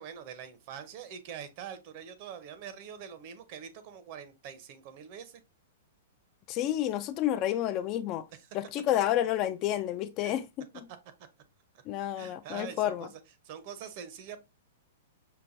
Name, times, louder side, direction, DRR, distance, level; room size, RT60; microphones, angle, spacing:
voice 1, 0.0-5.4 8.3-8.5 10.2-10.4 12.2-14.4, right 8 dB, 45° right, 0.7 m, -44 dB
voice 2, 6.5-8.2 8.5-10.7 11.9-13.1, left 12 dB, 35° left, 0.3 m, -30 dB
5.6 x 2.2 x 2.5 m
hypercardioid pair, 145°, 0 cm